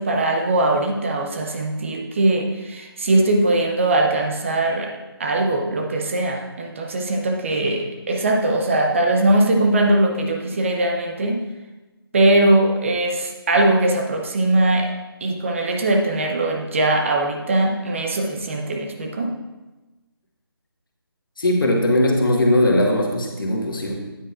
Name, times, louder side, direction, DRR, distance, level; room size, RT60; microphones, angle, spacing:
voice 1, 0.0-4.9 5.2-11.4 12.1-14.9 15.2-19.3, right 2 dB, 30° right, 2 dB, 0.6 m, -20 dB
voice 2, 21.4-23.9, left 1 dB, 55° left, 0 dB, 1.6 m, -19 dB
9.0 x 9.0 x 2.5 m, 1.1 s
figure-of-eight pair, 155°, 13 cm